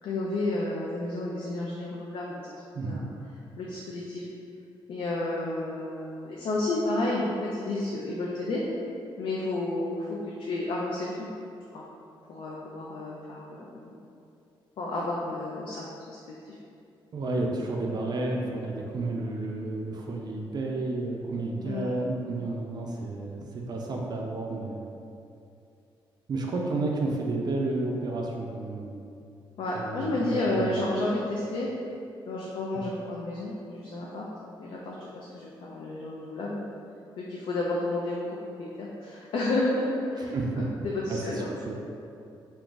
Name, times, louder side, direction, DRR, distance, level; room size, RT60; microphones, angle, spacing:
voice 1, 0.0-2.4 2.8-3.0 3.6-4.3 4.9-8.6 9.2-11.3 11.7-11.8 12.3-13.9 14.8-16.5 21.6-22.0 26.5-26.6 29.6-31.7 32.3-34.3 34.6-36.6 37.2-41.5, left 2 dB, 75° left, -4 dB, 0.4 m, -31 dB
voice 2, 17.1-24.9 26.3-29.0 29.8-30.8 40.3-40.7 41.1-41.7, right 2 dB, 50° right, 0 dB, 0.4 m, -31 dB
2.5 x 2.3 x 3.7 m, 2.6 s
cardioid pair, 100°, 9 cm